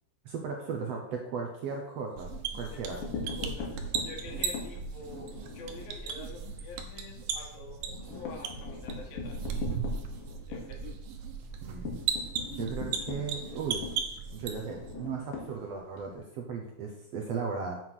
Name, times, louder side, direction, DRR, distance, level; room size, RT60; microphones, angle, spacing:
voice 1, 0.2-3.0 11.6-11.9 12.6-13.8 14.3-17.8, right 5 dB, 70° right, 2 dB, 1.6 m, -36 dB
sound 1, 2.2-14.9, right 6 dB, 90° right, 2.8 m, -37 dB
voice 2, 2.7-9.5 10.5-10.9, left 3 dB, 90° left, 0 dB, 3.5 m, -47 dB
sound 2, 2.8-6.0 6.4-6.6 6.9-7.0 7.3-16.1, left 5 dB, 70° left, 3.3 m, -41 dB
sound 3, 6.1-7.1 7.8-10.2 11.1-12.2, left 5 dB, 30° left, 2.0 m, -58 dB
7.5 x 6.1 x 6.2 m, 0.81 s
omnidirectional pair, 4.0 m